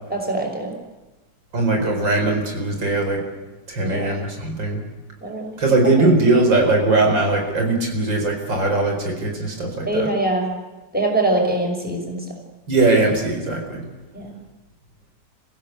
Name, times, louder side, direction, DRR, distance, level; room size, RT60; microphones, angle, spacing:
voice 1, 0.1-0.7 3.8-4.2 5.2-5.6 6.0-6.1 9.9-10.5 10.9-12.2 14.1-14.3, right 2 dB, 5° right, 1 dB, 5.8 m, -23 dB
voice 2, 1.5-3.2 3.7-4.8 5.6-10.1 12.7-13.8, right 2 dB, 85° right, 3 dB, 5.3 m, -20 dB
27.5 x 16.0 x 8.2 m, 1.1 s
omnidirectional pair, 2.0 m